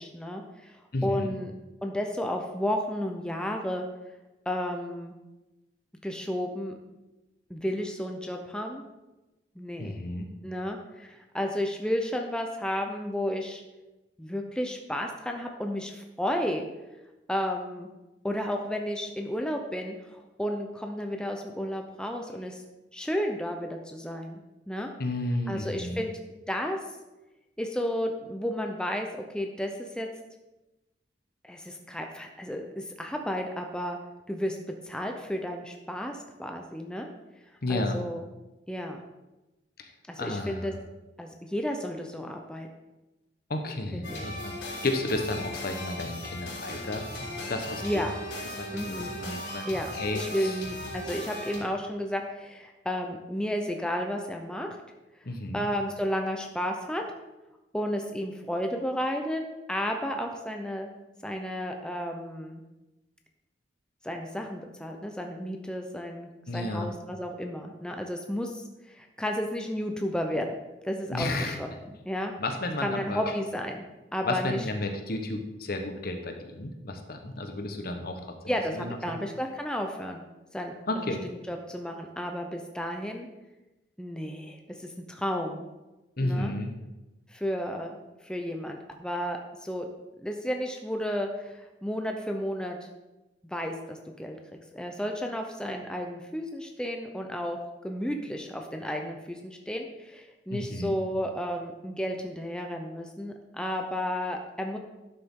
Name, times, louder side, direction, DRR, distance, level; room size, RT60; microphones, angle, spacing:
voice 1, 0.0-1.5 1.8-3.8 4.5-5.2 6.0-6.7 7.5-8.9 9.6-9.9 10.4-13.6 14.2-16.6 17.3-17.9 18.2-22.6 22.9-24.4 24.7-24.9 25.5-26.1 26.5-26.8 27.6-29.1 29.3-30.1 31.4-34.0 34.3-34.6 34.8-37.1 37.7-38.3 38.7-39.0 40.1-40.7 41.2-42.7 43.9-44.2 47.8-48.1 48.7-49.2 49.7-54.7 55.5-57.0 57.7-60.9 61.2-62.6 64.0-70.6 70.8-71.7 72.0-72.3 72.8-73.9 74.1-74.6 78.5-80.2 80.5-83.3 84.0-85.7 86.2-86.5 87.3-88.0 88.2-89.9 90.2-92.8 93.4-94.4 94.7-97.6 97.8-104.8, equal, 5° left, 3 dB, 0.7 m, -32 dB
voice 2, 0.9-1.3 9.8-10.3 25.0-26.0 37.6-38.0 39.8-39.9 40.2-40.7 43.5-47.1 47.5-48.1 48.6-50.6 55.2-55.7 66.5-66.9 71.1-71.6 72.4-73.3 74.2-79.2 80.9-81.2 86.2-86.7 100.5-101.0, left 2 dB, 55° left, 5 dB, 1.1 m, -32 dB
sound 1, 44.0-51.6, left 1 dB, 80° left, 3.6 m, -37 dB
11.5 x 6.7 x 3.7 m, 1.0 s
head